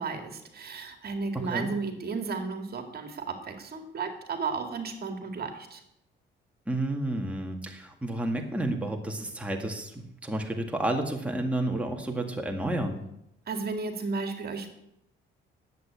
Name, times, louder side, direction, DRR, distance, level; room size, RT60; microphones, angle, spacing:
voice 1, 0.0-5.8 13.5-14.7, right 4 dB, 50° right, 5 dB, 2.2 m, -33 dB
voice 2, 1.3-1.7 6.7-13.0, right 1 dB, 5° right, 2 dB, 1.9 m, -31 dB
11.0 x 8.1 x 8.3 m, 0.81 s
cardioid pair, 90°, 20 cm